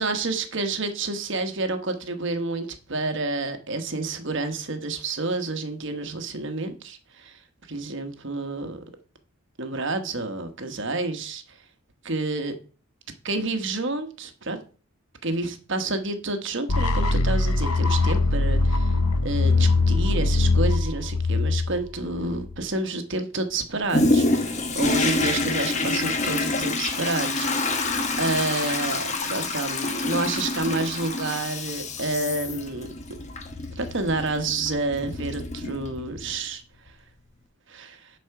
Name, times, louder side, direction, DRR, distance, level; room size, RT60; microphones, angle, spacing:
voice 1, 0.0-7.4 7.7-8.8 9.6-11.6 12.0-12.5 13.2-14.6 15.2-18.9 19.2-27.8 28.2-32.9 33.7-36.6 37.7-38.1, right 2 dB, 55° right, 7 dB, 1.2 m, -29 dB
sound 1, 16.7-22.6, left 3 dB, 90° left, 0.9 m, -22 dB
Toilet flush, 23.9-36.3 36.9-37.0, left 2 dB, 30° left, 1.1 m, -27 dB
10.0 x 4.3 x 5.8 m, 0.38 s
head